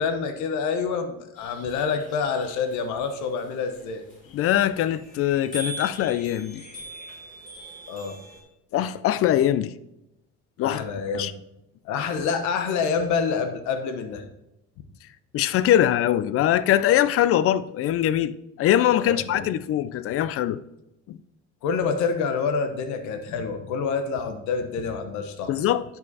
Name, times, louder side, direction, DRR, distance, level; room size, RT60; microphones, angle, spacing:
voice 1, 0.0-4.0 7.9-8.2 10.6-11.3 11.8-14.2 19.0-19.5 21.6-25.6, left 5 dB, 75° left, 1.0 m, -27 dB
sound 1, 1.4-8.4, right 1 dB, 30° left, 3.0 m, -42 dB
voice 2, 4.3-6.6 8.7-9.7 10.6-10.8 11.1-11.3 15.3-20.6 21.1-21.2 25.5-25.8, left 12 dB, 50° left, 0.5 m, -22 dB
9.3 x 5.2 x 4.0 m
cardioid pair, 115°, 29 cm